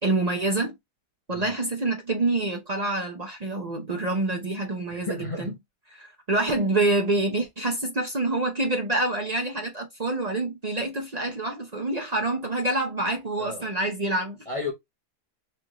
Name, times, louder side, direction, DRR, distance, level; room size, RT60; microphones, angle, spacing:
voice 1, 0.0-0.7 1.3-5.5 5.9-14.4, right 2 dB, 40° right, 0.6 m, -27 dB
voice 2, 4.9-5.6 13.4-13.7 14.5-14.7, left 3 dB, 30° left, 0.6 m, -33 dB
4.3 x 2.5 x 2.9 m
omnidirectional pair, 1.6 m